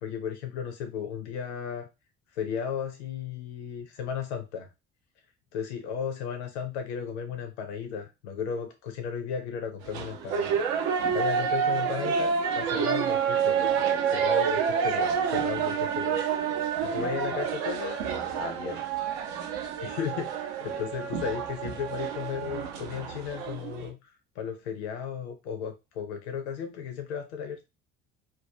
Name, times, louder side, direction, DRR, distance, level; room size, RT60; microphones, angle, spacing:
voice 1, 0.0-1.9 2.3-4.7 5.5-13.8 14.1-16.5 16.8-18.0 18.4-18.8 19.8-27.7, left 7 dB, 80° left, 7 dB, 0.5 m, -35 dB
sound 1, 9.8-23.9, right 7 dB, 75° right, 0.6 m, -28 dB
2.3 x 2.1 x 2.6 m, 0.25 s
hypercardioid pair, 55°, 33 cm